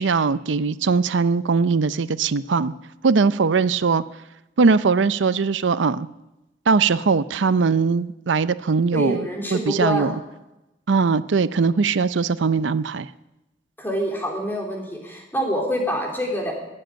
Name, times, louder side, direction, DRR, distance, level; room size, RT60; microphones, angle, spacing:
voice 1, 0.0-2.7 3.0-4.0 4.6-6.1 6.7-10.1 10.9-13.1, right 4 dB, 80° right, 16 dB, 0.5 m, -20 dB
voice 2, 8.9-10.1 13.8-16.5, equal, 10° left, -1 dB, 3.6 m, -26 dB
20.5 x 7.8 x 8.9 m, 0.96 s
head